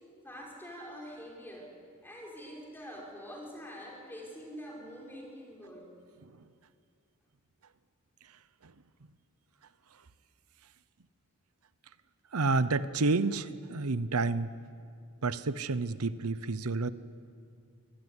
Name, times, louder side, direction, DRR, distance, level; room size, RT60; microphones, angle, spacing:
voice 1, 0.2-1.8 2.0-5.9, equal, 10° left, -2 dB, 5.0 m, -45 dB
voice 2, 6.2-6.5 8.2-8.7 9.9-10.0 12.3-14.5 15.2-16.9, right 3 dB, 85° right, 15 dB, 0.9 m, -30 dB
26.5 x 17.0 x 9.9 m, 2.2 s
head